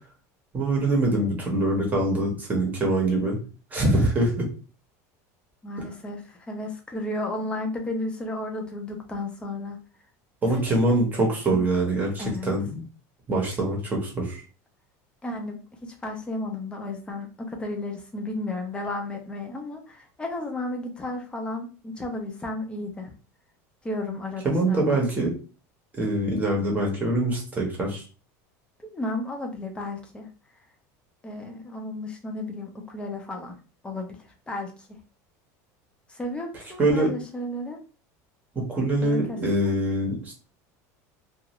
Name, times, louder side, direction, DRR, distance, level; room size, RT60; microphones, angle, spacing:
voice 1, 0.5-3.4 3.7-4.5 10.4-12.8 13.3-14.4 24.4-25.3 26.0-28.0 36.8-37.1 38.5-40.3, right 1 dB, 20° right, 0 dB, 1.0 m, -24 dB
voice 2, 5.6-9.8 10.5-10.6 11.5-11.6 12.2-12.5 15.2-23.1 23.8-25.0 28.8-30.3 31.2-33.6 33.8-35.0 36.1-37.8 39.0-39.8, left 2 dB, 10° left, 2 dB, 0.7 m, -33 dB
2.6 x 2.4 x 3.0 m, 0.36 s
cardioid pair, 150°, 8 cm